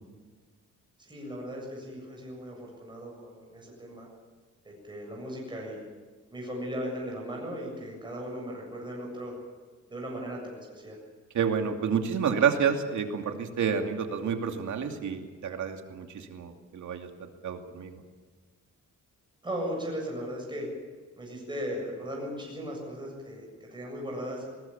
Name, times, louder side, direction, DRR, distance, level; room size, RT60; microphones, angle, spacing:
voice 1, 1.0-4.1 4.6-5.8 6.3-9.3 9.9-11.0 19.4-20.7 21.2-24.5, equal, 15° right, -2 dB, 7.6 m, -37 dB
voice 2, 11.3-18.0, right 7 dB, 70° right, 4 dB, 2.7 m, -29 dB
21.0 x 20.5 x 7.3 m, 1.5 s
cardioid pair, 135°, 30 cm